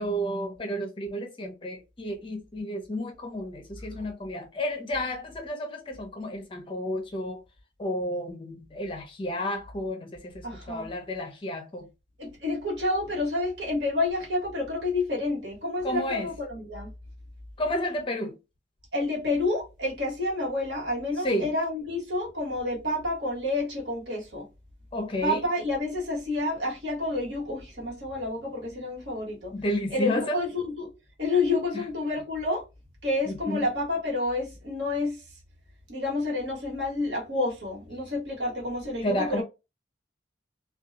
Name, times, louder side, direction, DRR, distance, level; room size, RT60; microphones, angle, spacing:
voice 1, 0.0-7.4 7.8-10.3 10.7-11.9 15.8-16.3 17.6-18.4 21.2-21.5 24.9-25.4 29.5-30.4 33.3-33.6 39.0-39.4, left 1 dB, 25° left, 0.5 m, -31 dB
voice 2, 10.4-10.9 12.2-16.9 18.9-24.5 25.2-29.5 29.9-30.9 31.2-32.6 33.0-35.3 35.9-39.4, left 2 dB, 65° right, 1.3 m, -29 dB
2.7 x 2.3 x 2.4 m
head